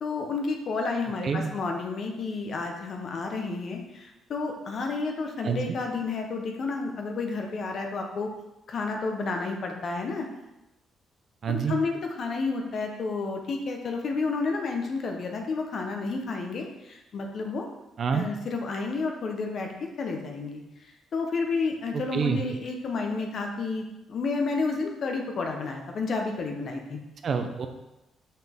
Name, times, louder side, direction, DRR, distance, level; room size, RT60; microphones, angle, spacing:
voice 1, 0.0-8.3 8.7-10.3 11.5-17.7 18.1-20.6 21.1-27.0, left 4 dB, 55° left, 2 dB, 1.1 m, -31 dB
voice 2, 5.4-5.8 11.4-11.8 18.0-18.3 21.9-22.4 27.2-27.7, right 6 dB, 50° right, 7 dB, 0.7 m, -27 dB
5.7 x 5.7 x 3.6 m, 0.95 s
cardioid pair, 90°, 0 cm